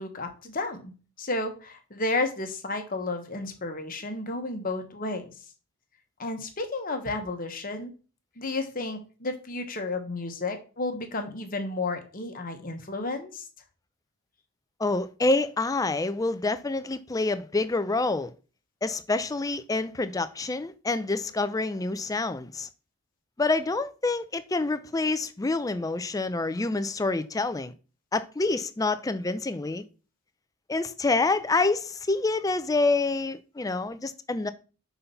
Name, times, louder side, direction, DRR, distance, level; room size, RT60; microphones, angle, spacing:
voice 1, 0.0-5.3 6.2-7.9 8.4-13.5, left 2 dB, 40° left, 1.1 m, -32 dB
voice 2, 14.8-18.3 18.8-22.7 23.4-27.7 28.1-29.8 30.7-34.5, left 3 dB, 15° left, 0.3 m, -27 dB
5.8 x 4.1 x 5.6 m
head